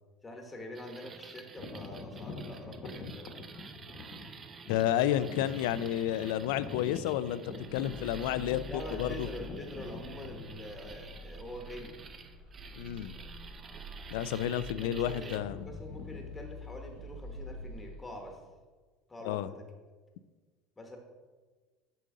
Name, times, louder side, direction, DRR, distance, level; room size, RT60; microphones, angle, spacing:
voice 1, 0.2-3.3 8.7-12.0 14.7-18.4 19.1-19.6 20.8-21.0, left 1 dB, 15° left, 2 dB, 1.0 m, -45 dB
sound 1, 0.7-15.4, right 5 dB, 30° right, 0.5 m, -50 dB
sound 2, 1.6-11.3 12.0-12.1 12.7-13.0 13.2-13.5 14.1-14.7 15.0-18.4, left 2 dB, 55° left, 1.0 m, -46 dB
voice 2, 4.7-7.4 7.7-8.6 9.0-9.3 12.8-13.2 14.1-15.7 19.2-19.5, left 12 dB, 85° left, 15 dB, 0.3 m, -31 dB
sound 3, 7.7-17.7, equal, 90° right, 0.9 m, -47 dB
6.8 x 5.2 x 3.7 m, 1.4 s
supercardioid pair, 125°, 0 cm